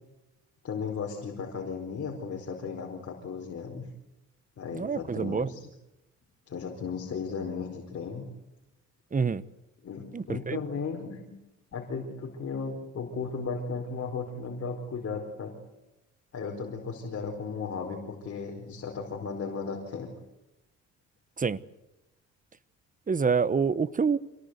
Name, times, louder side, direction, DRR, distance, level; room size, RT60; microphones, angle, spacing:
voice 1, 0.6-3.9 4.6-5.7 6.5-8.2 9.8-11.3 11.7-15.5 16.3-20.1, left 5 dB, 50° left, 4.7 m, -35 dB
voice 2, 4.7-5.5 9.1-9.4 10.1-10.6 21.4-21.6 23.1-24.2, right 5 dB, 25° right, 1.1 m, -26 dB
27.0 x 18.0 x 8.2 m
cardioid pair, 90°, 30 cm